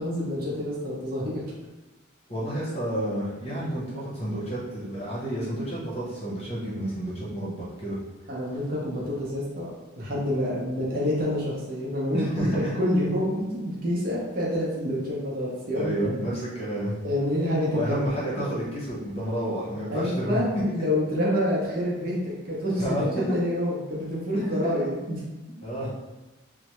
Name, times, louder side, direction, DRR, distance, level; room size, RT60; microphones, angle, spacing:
voice 1, 0.0-1.4 8.3-16.2 17.0-18.1 19.9-20.5 20.7-25.2, equal, 45° right, -5 dB, 0.8 m, -27 dB
voice 2, 2.3-8.0 12.1-12.7 15.7-16.9 17.7-20.4 22.7-23.0 24.3-24.7 25.6-25.9, right 1 dB, 30° left, -6 dB, 0.8 m, -30 dB
3.2 x 2.1 x 3.0 m, 1.1 s
head